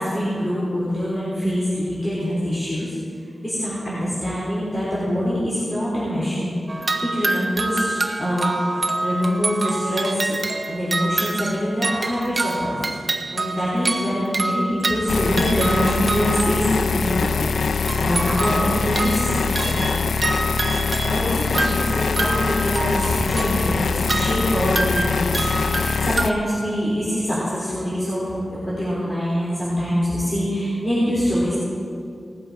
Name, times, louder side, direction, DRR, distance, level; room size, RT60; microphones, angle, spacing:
voice 1, 0.0-3.0 3.4-6.5 7.0-12.8 13.1-20.0 21.1-25.5 25.8-31.6, equal, 30° left, -9 dB, 3.7 m, -24 dB
sound 1, 6.7-16.9 17.8-26.3, right 2 dB, 35° right, 0.8 m, -27 dB
sound 2, 15.1-26.3, left 5 dB, 90° left, 0.3 m, -23 dB
19.0 x 8.1 x 4.8 m, 2.4 s
wide cardioid pair, 130°, 0 cm